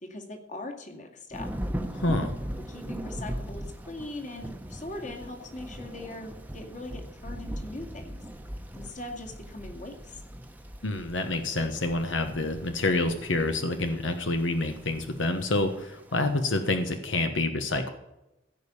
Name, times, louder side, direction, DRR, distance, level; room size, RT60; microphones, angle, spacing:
voice 1, 0.0-1.5 2.7-8.2 8.8-10.2, left 2 dB, 40° left, 2 dB, 2.2 m, -40 dB
Thunder / Rain, 1.3-16.9, equal, 10° right, 0.9 m, -40 dB
voice 2, 1.9-2.3 10.8-17.9, left 2 dB, 90° left, 7 dB, 1.2 m, -27 dB
15.5 x 5.3 x 8.4 m, 0.92 s
head